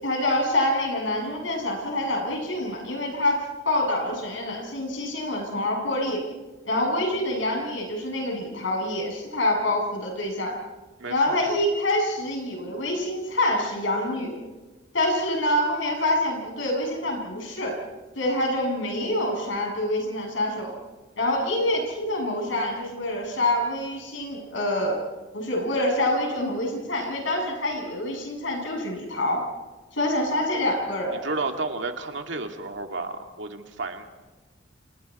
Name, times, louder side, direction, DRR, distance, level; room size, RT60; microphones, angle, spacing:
voice 1, 0.0-3.4 3.6-6.2 6.6-10.5 11.1-14.4 14.9-17.7 18.2-20.7 21.2-25.0 25.3-29.4 29.9-31.2, left 1 dB, 80° left, 1 dB, 7.6 m, -26 dB
voice 2, 11.0-11.4 31.1-34.0, right 3 dB, 70° right, 4 dB, 2.3 m, -32 dB
29.5 x 28.5 x 4.3 m, 1.2 s
head